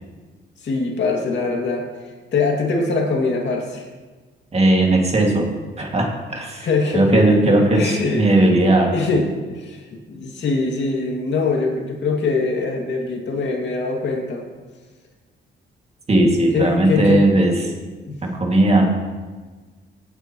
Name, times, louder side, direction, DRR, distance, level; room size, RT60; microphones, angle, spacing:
voice 1, 0.6-1.9 2.3-3.9 6.6-8.5 8.9-14.4 16.5-17.2 18.0-18.2, left 3 dB, 60° left, 0 dB, 2.3 m, -23 dB
voice 2, 4.5-5.5 5.8-6.7 6.9-8.9 16.1-17.7 18.2-19.0, right 1 dB, 30° right, 0 dB, 2.2 m, -17 dB
17.5 x 9.1 x 3.1 m, 1.4 s
cardioid pair, 100°, 20 cm